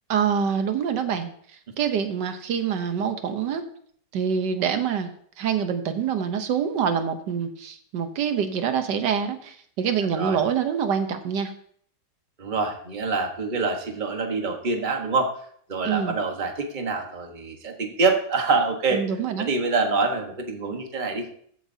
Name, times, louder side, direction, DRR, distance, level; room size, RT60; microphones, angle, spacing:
voice 1, 0.1-1.3 1.8-3.6 4.1-5.1 5.4-11.5 15.8-16.2 18.9-19.5, right 7 dB, 80° right, 8 dB, 1.5 m, -25 dB
voice 2, 12.4-15.3 15.7-19.0 19.4-21.3, right 4 dB, 30° right, 3 dB, 1.3 m, -25 dB
14.5 x 9.2 x 2.7 m, 0.62 s
omnidirectional pair, 1.9 m